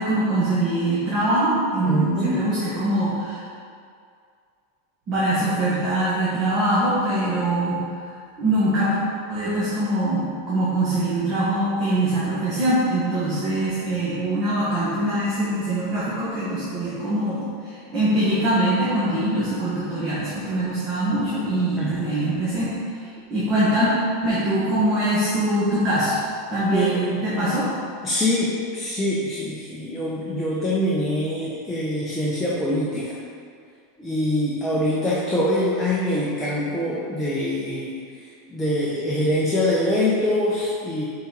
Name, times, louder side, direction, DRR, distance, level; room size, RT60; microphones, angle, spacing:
voice 1, 0.0-3.4 5.1-7.8 8.4-9.0 9.3-22.7 23.3-23.9 24.2-26.1 26.5-27.7, right 1 dB, 30° right, -10 dB, 1.5 m, -23 dB
voice 2, 1.8-2.4 21.8-22.2 26.7-27.1 28.0-33.2 34.0-37.9 38.5-41.0, left 1 dB, 5° left, -7 dB, 0.8 m, -24 dB
6.8 x 4.2 x 4.0 m, 2.3 s
supercardioid pair, 155°, 0 cm